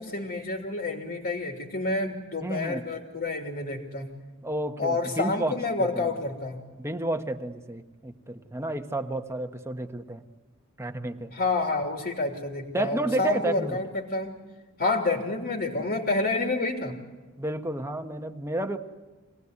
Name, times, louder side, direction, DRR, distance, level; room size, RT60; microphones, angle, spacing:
voice 1, 0.0-4.1 4.8-6.6 11.3-14.4 14.8-17.0, left 3 dB, 50° left, 2 dB, 3.0 m, -29 dB
voice 2, 2.4-2.8 4.4-6.0 6.8-10.2 10.8-11.3 12.7-13.8 17.4-18.8, right 1 dB, 15° right, 6 dB, 1.2 m, -31 dB
26.0 x 19.0 x 9.6 m, 1.2 s
head